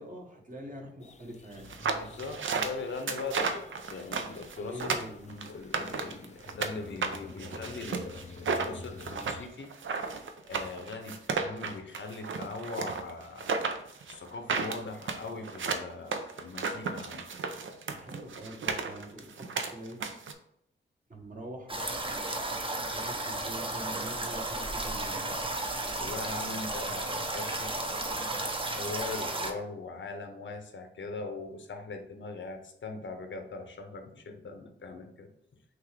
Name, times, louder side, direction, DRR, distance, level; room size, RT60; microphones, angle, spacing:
voice 1, 0.0-1.7 4.6-5.2 17.9-20.0 21.1-25.5, right 1 dB, 40° right, 0 dB, 1.2 m, -44 dB
sound 1, 1.0-9.5, left 4 dB, 35° left, 0.5 m, -50 dB
sound 2, 1.7-6.7 7.0-20.3, right 5 dB, 70° right, 0.5 m, -33 dB
voice 2, 2.0-9.7 10.4-13.5 14.0-17.3 26.0-27.7 28.7-35.3, left 3 dB, 65° left, 6 dB, 0.7 m, -41 dB
sound 3, 21.7-29.5, right 2 dB, 25° right, 0.7 m, -33 dB
6.0 x 2.5 x 3.3 m, 0.75 s
wide cardioid pair, 85°, 21 cm